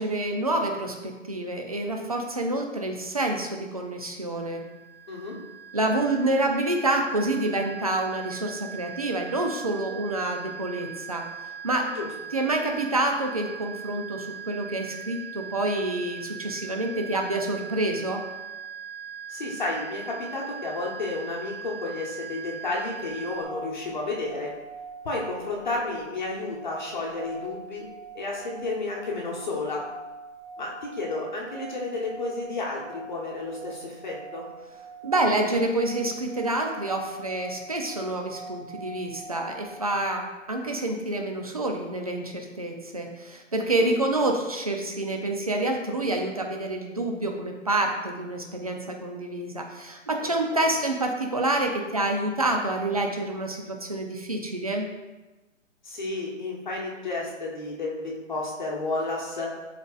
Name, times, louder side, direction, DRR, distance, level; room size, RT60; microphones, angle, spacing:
voice 1, 0.0-4.6 5.7-11.9 12.3-18.2 35.0-54.9, right 2 dB, 30° right, 2 dB, 0.5 m, -28 dB
sound 1, 4.3-23.4, right 8 dB, 5° right, 1.2 m, -40 dB
voice 2, 19.3-24.5 25.0-27.9 28.1-29.8 30.6-34.4 43.8-43.9 50.2-50.7 55.8-59.5, left 2 dB, 35° left, -3 dB, 1.1 m, -32 dB
sound 2, 23.1-40.3, right 3 dB, 60° right, 1.8 m, -43 dB
10.5 x 4.1 x 2.4 m, 1.1 s
hypercardioid pair, 170°, 38 cm